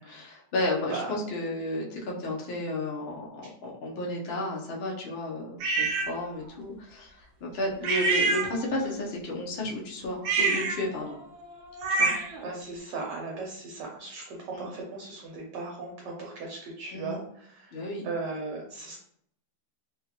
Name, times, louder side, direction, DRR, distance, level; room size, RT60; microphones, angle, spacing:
voice 1, 0.0-11.2 11.9-12.1 14.5-14.7 16.9-17.2 17.7-18.1, left 1 dB, 65° left, -2 dB, 0.6 m, -33 dB
sound 1, 5.6-6.1 7.8-8.9 10.2-12.4, right 3 dB, 90° right, 1.4 m, -27 dB
voice 2, 12.1-17.7 18.0-19.0, right 3 dB, 70° right, -1 dB, 1.2 m, -37 dB
3.5 x 2.4 x 2.8 m, 0.67 s
omnidirectional pair, 2.0 m